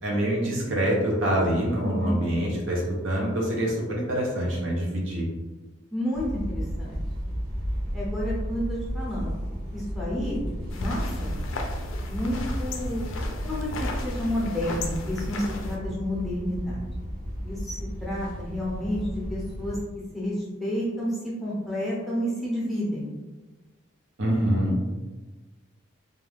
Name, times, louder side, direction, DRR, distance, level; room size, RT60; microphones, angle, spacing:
voice 1, 0.0-5.3 24.2-24.7, right 1 dB, 65° right, -3 dB, 0.7 m, -25 dB
voice 2, 1.8-2.2 5.9-7.0 7.9-9.4 9.7-10.4 10.8-11.3 12.1-13.0 13.4-16.8 17.4-19.8 20.1-23.1, equal, ahead, -7 dB, 0.6 m, -30 dB
sound 1, 6.1-19.8, equal, 85° right, 1.2 m, -33 dB
sound 2, 10.7-15.8, left 2 dB, 75° left, 0.4 m, -34 dB
2.4 x 2.2 x 3.3 m, 1.2 s
head